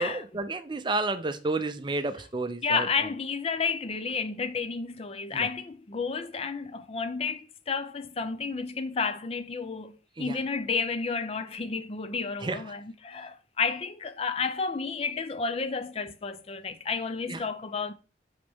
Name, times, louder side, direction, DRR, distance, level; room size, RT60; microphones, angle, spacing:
voice 1, 0.0-2.9 5.3-5.5 10.2-10.4 12.4-12.6 17.3-17.4, right 2 dB, 25° right, 0.5 m, -31 dB
voice 2, 2.6-9.9 10.2-17.9, left 5 dB, 30° left, 0.4 m, -31 dB
8.5 x 4.0 x 3.5 m
head